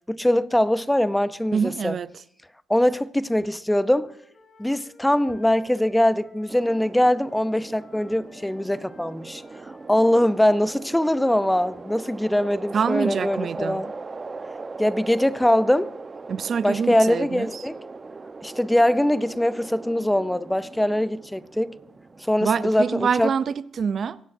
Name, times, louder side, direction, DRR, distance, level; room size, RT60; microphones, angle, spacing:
voice 1, 0.1-2.0 2.7-4.1 4.6-9.4 9.9-13.9 14.8-15.9 16.6-17.8 18.4-21.8 22.2-23.3, left 1 dB, 5° left, 0.6 m, -22 dB
voice 2, 1.5-2.1 12.7-13.8 16.3-17.7 22.4-24.2, right 6 dB, 50° right, 0.5 m, -25 dB
Wind instrument woodwind instrument, 3.4-6.9 7.3-11.0, left 3 dB, 50° left, 4.3 m, -54 dB
sound 1, 6.5-22.8, right 3 dB, 30° right, 1.0 m, -40 dB
24.0 x 16.5 x 2.7 m
cardioid pair, 90°, 0 cm